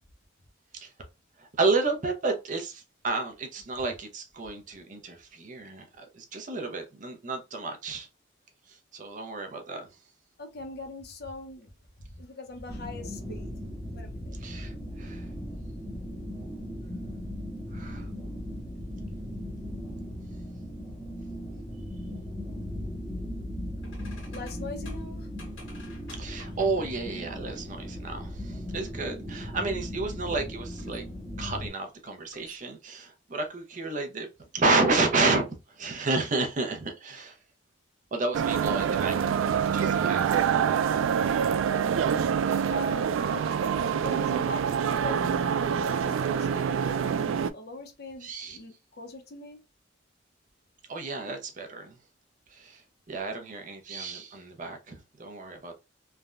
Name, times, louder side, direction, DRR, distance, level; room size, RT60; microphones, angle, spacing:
voice 1, 1.4-8.1 8.7-9.9 14.4-15.3 17.7-18.1 26.1-31.1 31.4-34.3 34.5-37.4 38.1-39.4 39.7-40.3 42.4-42.7 48.2-48.6 50.9-52.0 52.5-52.8 53.1-55.7, right 3 dB, 40° right, 0.6 m, -31 dB
voice 2, 10.4-11.7 12.0-13.5 13.9-14.4 24.3-25.3 38.5-38.8 42.7-49.6, left 2 dB, 55° left, 0.6 m, -42 dB
sound 1, 12.7-31.7, equal, 5° left, 1.0 m, -38 dB
sound 2, 23.8-27.1 29.5-29.7 30.3-31.2 32.2-32.6, left 2 dB, 85° left, 1.2 m, -52 dB
sound 3, 38.3-47.5, right 7 dB, 85° right, 0.3 m, -26 dB
3.3 x 2.2 x 2.4 m
head